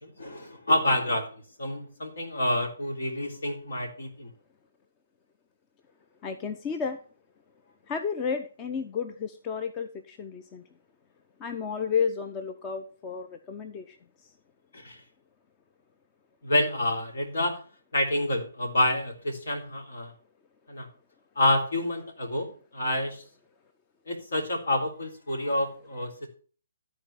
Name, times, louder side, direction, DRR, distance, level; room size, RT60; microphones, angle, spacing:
voice 1, 0.0-4.3 14.7-15.0 16.4-17.6 17.9-20.1 20.7-20.9 21.3-23.2 24.1-26.3, left 1 dB, 65° left, 3 dB, 3.4 m, -28 dB
voice 2, 6.2-7.0 7.9-10.6 11.4-14.0, left 6 dB, 25° left, 8 dB, 0.8 m, -32 dB
13.5 x 4.7 x 6.9 m, 0.41 s
figure-of-eight pair, 135°, 0 cm